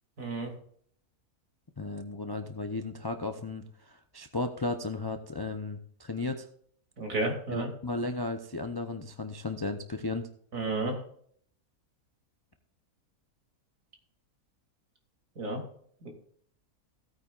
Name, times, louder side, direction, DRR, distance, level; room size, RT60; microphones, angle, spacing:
voice 1, 0.2-0.5 7.0-7.7 10.5-11.0 15.4-15.6 16.0-16.1, right 2 dB, 60° right, 1 dB, 3.1 m, -31 dB
voice 2, 1.8-6.5 7.5-10.3, left 2 dB, 35° left, 5 dB, 0.3 m, -35 dB
16.5 x 9.1 x 2.5 m, 0.62 s
omnidirectional pair, 1.6 m